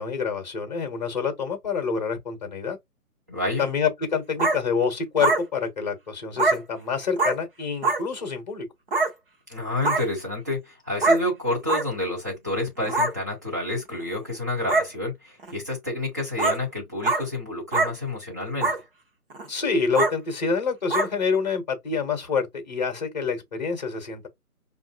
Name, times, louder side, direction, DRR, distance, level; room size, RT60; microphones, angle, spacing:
voice 1, 0.0-2.8 3.6-8.7 19.5-24.3, left 5 dB, 30° left, 1.0 m, -27 dB
voice 2, 3.3-3.7 9.5-18.7, left 2 dB, 10° right, 0.8 m, -29 dB
sound 1, 4.4-4.6 5.2-5.4 6.4-6.6 7.2-7.3 7.8-8.0 8.9-9.1 9.8-10.0 11.0-11.2 11.7-11.8 12.8-13.1 13.9-14.0 14.7-14.9 15.4-15.5 16.4-16.6 17.0-17.2 17.7-17.9 18.6-18.8 19.3-19.5 19.9-20.1 20.9-21.1, right 3 dB, 40° right, 1.0 m, -22 dB
5.5 x 2.6 x 2.4 m
figure-of-eight pair, 150°, 45 cm